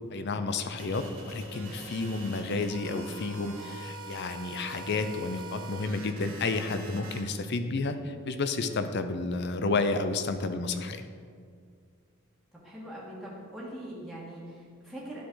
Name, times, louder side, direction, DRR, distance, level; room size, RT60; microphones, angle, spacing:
voice 1, 0.1-11.0, left 3 dB, 55° left, 9 dB, 0.6 m, -31 dB
sound 1, 0.8-7.2, right 3 dB, 85° right, 1.3 m, -44 dB
voice 2, 12.6-15.2, right 1 dB, ahead, -7 dB, 1.7 m, -42 dB
11.5 x 6.2 x 3.9 m, 2.1 s
head